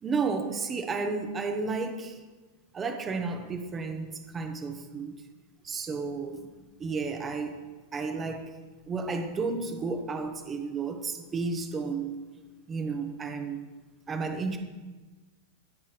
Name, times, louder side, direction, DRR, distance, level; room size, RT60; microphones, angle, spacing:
voice 1, 0.0-2.2 2.7-5.1 5.6-7.5 7.9-8.5 8.9-12.1 12.7-13.6 14.1-14.6, right 4 dB, 15° right, 6 dB, 0.7 m, -32 dB
13.0 x 5.5 x 3.2 m, 1.3 s
supercardioid pair, 165°, 0 cm